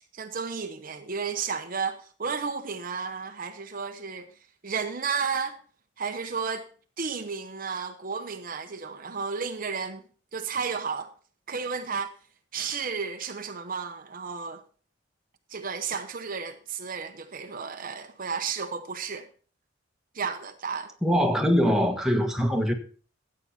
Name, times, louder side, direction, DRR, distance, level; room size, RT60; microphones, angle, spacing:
voice 1, 0.1-4.3 4.6-5.6 6.0-6.7 7.0-10.0 10.3-11.1 11.5-12.1 12.5-14.6 15.5-19.3 20.1-20.9, right 5 dB, 45° right, 0.9 m, -32 dB
voice 2, 21.0-22.7, equal, 5° right, 1.6 m, -23 dB
13.5 x 8.7 x 4.3 m
head